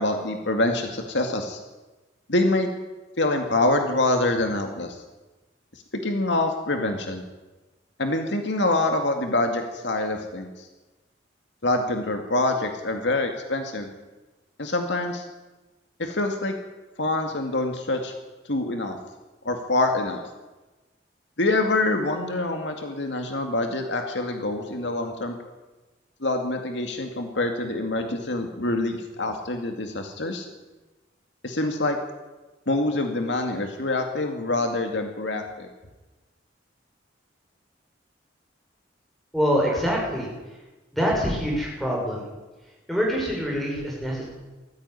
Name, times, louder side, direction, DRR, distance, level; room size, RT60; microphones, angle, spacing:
voice 1, 0.0-1.6 2.3-2.7 3.2-5.0 5.7-7.2 8.0-10.7 11.6-13.9 14.6-15.3 16.0-16.6 17.0-18.1 18.4-19.0 19.4-20.2 21.4-25.4 26.2-30.5 31.4-32.0 32.7-35.7, left 2 dB, 75° left, 4 dB, 2.2 m, -25 dB
voice 2, 39.3-40.3 40.9-42.3 42.9-44.2, equal, ahead, -2 dB, 6.3 m, -25 dB
19.0 x 14.5 x 9.8 m, 1.2 s
head